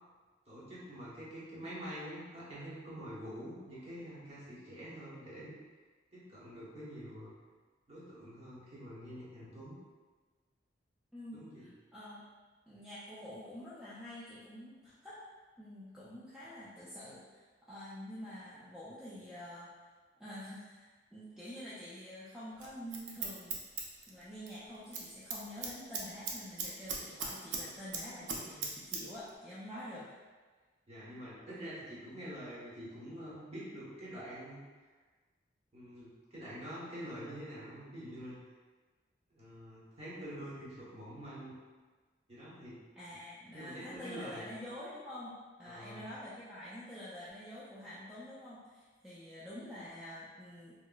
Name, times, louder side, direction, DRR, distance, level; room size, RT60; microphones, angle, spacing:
voice 1, 0.5-5.5 6.1-7.3 7.9-9.8 11.3-11.7 30.9-34.6 35.7-38.4 39.3-41.5 42.3-42.8 43.5-44.4 45.6-46.1, equal, 35° right, -10 dB, 0.9 m, -46 dB
voice 2, 11.1-12.2 12.7-15.2 15.6-19.7 20.2-23.6 24.1-30.1 31.5-31.7 43.0-45.3 45.6-50.7, equal, 5° right, -10 dB, 0.3 m, -47 dB
Scissors, 22.6-24.6 24.8-25.1 25.3-27.6 27.9-29.0 29.3-29.4, right 5 dB, 80° right, 0.5 m, -38 dB
3.8 x 2.1 x 2.2 m, 1.4 s
head